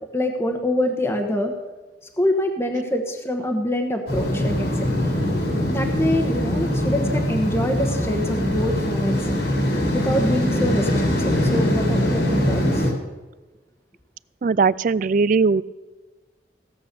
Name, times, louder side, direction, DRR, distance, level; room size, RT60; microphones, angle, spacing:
voice 1, 0.1-1.6 2.2-4.9 5.7-9.3 9.9-12.9, left 1 dB, 15° left, 3 dB, 1.2 m, -25 dB
sound 1, 4.1-12.9, left 1 dB, 75° left, 3.6 m, -22 dB
voice 2, 14.4-15.6, right 4 dB, 50° right, 20 dB, 0.4 m, -19 dB
16.5 x 8.2 x 6.8 m, 1.2 s
head